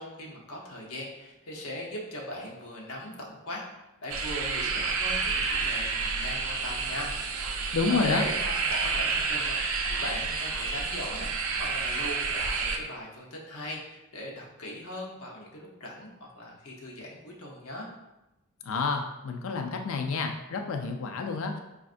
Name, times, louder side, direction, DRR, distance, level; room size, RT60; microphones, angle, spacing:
voice 1, 0.0-3.6 4.0-7.1 7.9-17.9, left 1 dB, 85° left, -2 dB, 0.8 m, -39 dB
sound 1, 4.1-12.8, right 4 dB, 70° right, 0.4 m, -30 dB
voice 2, 7.7-8.2 18.6-21.6, left 4 dB, 65° left, 4 dB, 0.4 m, -29 dB
5.0 x 2.4 x 2.5 m, 0.96 s
head